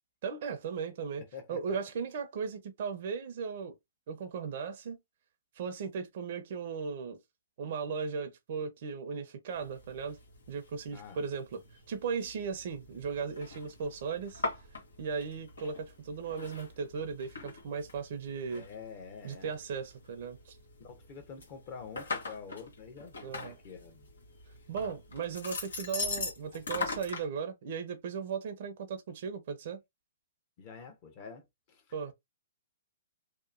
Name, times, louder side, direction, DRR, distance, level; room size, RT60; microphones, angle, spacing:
voice 1, 0.2-1.2 1.5-3.7 4.1-5.0 5.6-7.2 7.6-10.2 10.5-11.6 11.9-14.4 15.0-18.6 19.2-20.6 23.2-23.6 24.7-29.8 31.9-32.1, right 6 dB, 50° right, 0.5 m, -37 dB
voice 2, 1.2-1.8 10.9-11.2 18.5-19.5 20.8-24.1 30.6-31.9, left 5 dB, 40° left, 0.9 m, -47 dB
sound 1, 9.5-27.2, left 3 dB, 85° left, 1.1 m, -42 dB
2.9 x 2.1 x 2.4 m
hypercardioid pair, 145°, 0 cm